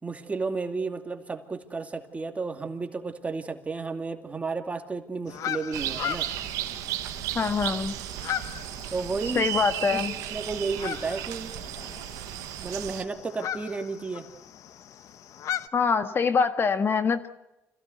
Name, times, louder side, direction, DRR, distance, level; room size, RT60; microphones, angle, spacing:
voice 1, 0.0-6.3 8.9-9.5 9.9-11.5 12.6-14.3, right 4 dB, 25° right, 6 dB, 2.5 m, -32 dB
sound 1, 5.3-15.7, left 10 dB, 70° left, 1.1 m, -38 dB
sound 2, 5.7-13.0, right 13 dB, 90° right, 1.4 m, -34 dB
voice 2, 7.3-7.9 9.3-10.1 15.7-17.3, left 5 dB, 40° left, 10 dB, 1.6 m, -24 dB
26.0 x 16.5 x 8.1 m, 0.93 s
cardioid pair, 90°, 6 cm